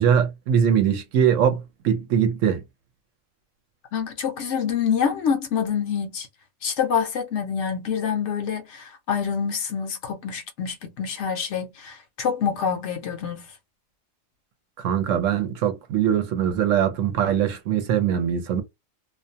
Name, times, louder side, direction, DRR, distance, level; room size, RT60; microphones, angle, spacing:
voice 1, 0.0-2.6 14.8-18.6, right 8 dB, 75° right, 0.9 m, -22 dB
voice 2, 3.9-6.3 6.6-13.5, left 7 dB, 65° left, 0.8 m, -26 dB
2.4 x 2.2 x 2.7 m
omnidirectional pair, 1.4 m